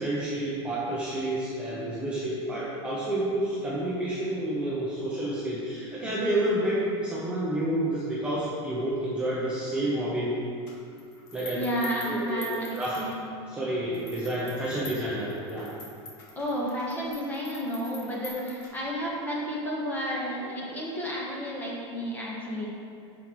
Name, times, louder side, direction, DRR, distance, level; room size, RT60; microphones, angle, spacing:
voice 1, 0.0-10.3 11.3-11.6 12.1-13.0 13.5-15.7, right 1 dB, 5° right, -8 dB, 0.7 m, -29 dB
sound 1, 10.7-13.5 13.9-19.1, left 3 dB, 50° left, 1.3 m, -46 dB
voice 2, 11.5-13.2 16.3-22.7, equal, 10° left, -4 dB, 1.2 m, -31 dB
8.8 x 6.1 x 3.1 m, 2.5 s
supercardioid pair, 165°, 15 cm